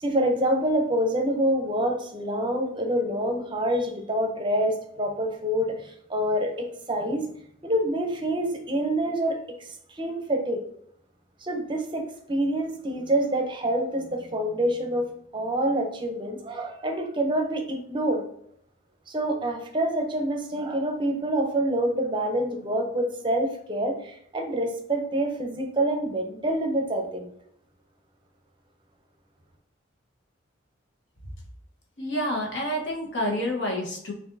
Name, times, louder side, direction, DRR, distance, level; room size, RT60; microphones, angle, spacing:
voice 1, 0.0-7.2 7.6-9.6 9.9-10.6 11.4-15.1 15.3-18.2 19.1-27.3, right 1 dB, 25° right, 4 dB, 0.6 m, -26 dB
voice 2, 32.0-34.1, equal, 70° left, -1 dB, 1.1 m, -28 dB
6.1 x 2.5 x 2.6 m, 0.71 s
head